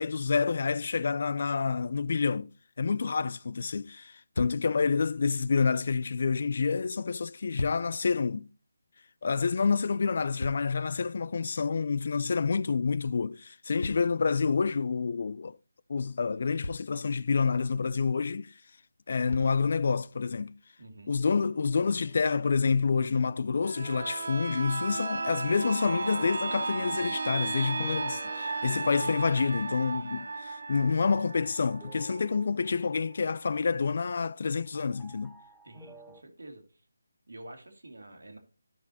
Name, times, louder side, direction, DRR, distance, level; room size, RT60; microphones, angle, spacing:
voice 1, 0.0-2.5 2.8-8.5 9.2-15.6 15.9-18.5 19.1-20.5 21.1-35.3, left 5 dB, 50° left, 0.3 m, -28 dB
sound 1, 4.0-4.1 4.3-4.8 7.2-8.0 9.9-11.0 13.8-14.8 16.0-16.1 16.6-17.1 18.5-18.6 19.3-19.7 20.5-20.6, left 2 dB, 85° left, 0.7 m, -39 dB
voice 2, 20.8-21.2 35.6-36.8 37.3-38.4, right 1 dB, 80° right, 2.1 m, -48 dB
sound 2, 21.5-36.2, right 3 dB, 5° right, 0.6 m, -59 dB
sound 3, 23.6-33.2 33.6-33.7, right 3 dB, 65° right, 0.7 m, -35 dB
12.0 x 6.0 x 2.8 m
figure-of-eight pair, 165°, 0 cm